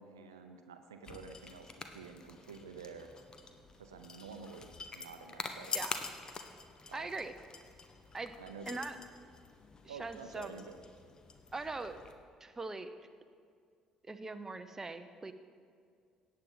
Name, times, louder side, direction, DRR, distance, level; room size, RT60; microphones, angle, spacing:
voice 1, 0.0-3.1 3.8-5.8 6.9-7.1 8.4-8.8 9.9-10.8, right 5 dB, 85° right, 7 dB, 0.6 m, -49 dB
sound 1, 1.0-12.1, left 4 dB, 35° left, 1.1 m, -46 dB
voice 2, 6.9-7.3 8.1-8.4 8.7-9.0 9.8-10.5 11.5-12.0 12.4-12.9 14.0-15.3, right 3 dB, 20° right, 10 dB, 0.8 m, -41 dB
17.5 x 8.6 x 3.8 m, 2.2 s
hypercardioid pair, 55°, 2 cm